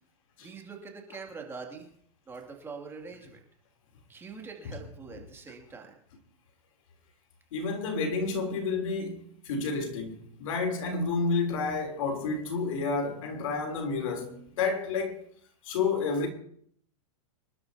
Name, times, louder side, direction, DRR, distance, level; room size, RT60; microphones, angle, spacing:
voice 1, 0.4-1.8 2.3-3.4 4.1-5.9, right 4 dB, 15° right, 2.6 m, -43 dB
voice 2, 7.5-15.2 15.7-16.3, left 4 dB, 65° left, 3.6 m, -30 dB
26.0 x 12.0 x 2.9 m
hypercardioid pair, 140°, 18 cm